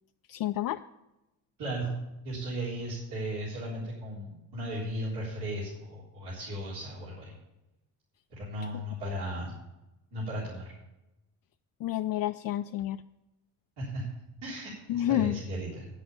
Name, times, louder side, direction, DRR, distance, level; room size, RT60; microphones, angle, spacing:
voice 1, 0.3-0.8 11.8-13.0 14.9-15.4, left 13 dB, 55° left, 7 dB, 0.5 m, -29 dB
voice 2, 1.6-1.9 2.2-7.4 8.3-9.5 10.1-10.7 13.8-14.1 14.4-15.9, right 1 dB, 75° right, -8 dB, 4.0 m, -36 dB
9.3 x 8.1 x 6.8 m, 0.95 s
cardioid pair, 75°, 40 cm